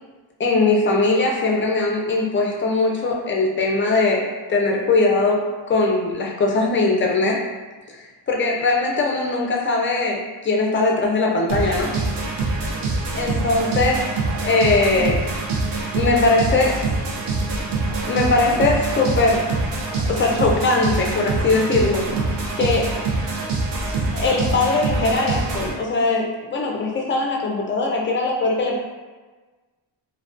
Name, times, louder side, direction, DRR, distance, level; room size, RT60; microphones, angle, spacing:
voice 1, 0.4-7.5 7.9-12.0 13.1-14.1 14.4-15.3 15.9-16.9 18.1-19.6 20.1-22.3 22.6-23.1 24.1-28.8, left 3 dB, 25° left, -1 dB, 0.4 m, -20 dB
sound 1, 11.5-25.7, right 3 dB, 60° right, 0.6 m, -25 dB
2.3 x 2.2 x 2.4 m, 1.3 s
wide cardioid pair, 95°, 48 cm